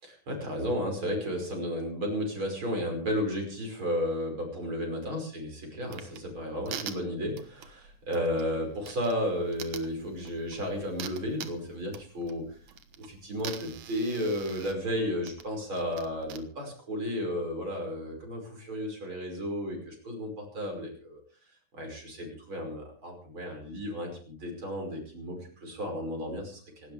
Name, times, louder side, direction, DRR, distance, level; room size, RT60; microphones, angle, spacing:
voice 1, 0.0-12.5 13.0-21.2 21.7-26.9, equal, 35° right, 2 dB, 6.0 m, -33 dB
sound 1, 5.9-16.4, right 8 dB, 60° right, 2.3 m, -45 dB
26.5 x 12.5 x 3.4 m, 0.44 s
omnidirectional pair, 4.1 m